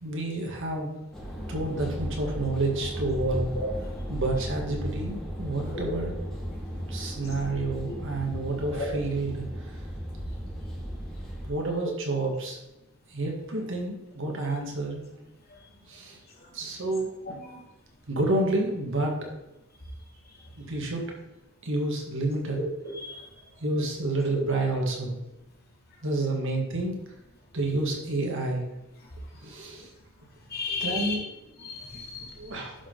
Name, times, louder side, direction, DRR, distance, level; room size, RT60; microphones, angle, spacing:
voice 1, 0.0-1.0 1.5-3.5 4.1-6.2 6.9-9.4 11.4-12.6 13.1-15.1 15.9-16.2 16.5-17.6 18.1-19.2 20.6-21.1 21.6-22.6 23.6-25.2 26.0-27.0 27.5-28.6 29.4-29.9 30.8-31.3 31.6-31.7 32.1-32.7, right 2 dB, 65° right, 1 dB, 1.9 m, -29 dB
sound 1, 1.1-11.5, equal, 5° left, 2.4 m, -35 dB
voice 2, 22.9-23.3 30.5-31.2 31.6-32.5, left 4 dB, 50° left, -2 dB, 2.7 m, -34 dB
11.0 x 6.1 x 4.0 m, 0.94 s
head